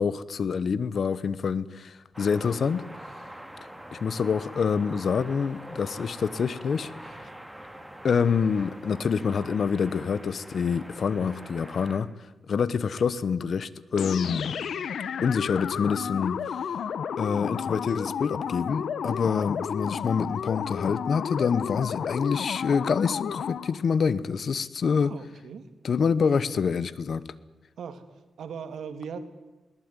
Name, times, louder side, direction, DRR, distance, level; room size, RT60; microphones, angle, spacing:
voice 1, 0.0-2.8 3.9-6.9 8.0-12.1 12.5-14.5 15.2-16.5 17.2-25.1 25.8-27.2, left 6 dB, 60° left, 1.1 m, -26 dB
sound 1, 2.1-12.0, right 1 dB, 5° right, 2.7 m, -44 dB
sound 2, 14.0-23.8, left 7 dB, 80° left, 0.9 m, -32 dB
voice 2, 25.0-25.7 27.8-28.0 28.4-29.2, right 6 dB, 85° right, 2.3 m, -39 dB
21.5 x 19.5 x 9.8 m
wide cardioid pair, 115°, 0 cm